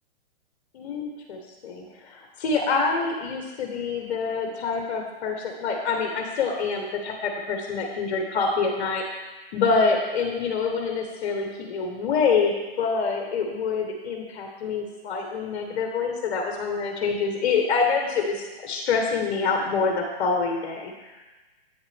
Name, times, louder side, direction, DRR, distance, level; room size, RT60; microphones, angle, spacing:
voice 1, 0.7-21.3, left 4 dB, 55° left, 1 dB, 1.3 m, -26 dB
8.4 x 7.2 x 3.5 m, 1.1 s
hypercardioid pair, 135°, 32 cm